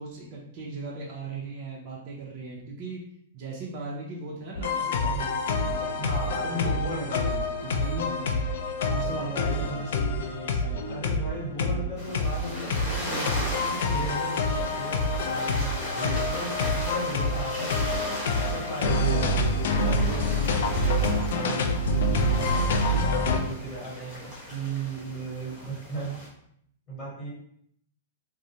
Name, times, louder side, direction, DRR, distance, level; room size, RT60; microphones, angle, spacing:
voice 1, 0.0-3.0 3.3-5.3 5.6-6.0 6.4-8.4 8.8-10.8 18.8-19.4 24.5-25.4, right 4 dB, 35° right, -5 dB, 0.5 m, -36 dB
sound 1, 4.5-23.4, left 2 dB, 65° left, 0.3 m, -27 dB
voice 2, 5.9-7.3 9.0-9.6 10.9-18.0 18.3-24.3 24.9-26.1 26.9-27.3, right 1 dB, 15° left, -7 dB, 1.3 m, -37 dB
sound 2, 12.0-26.3, equal, 35° left, 1.0 m, -37 dB
2.5 x 2.0 x 2.8 m, 0.69 s
hypercardioid pair, 155°, 0 cm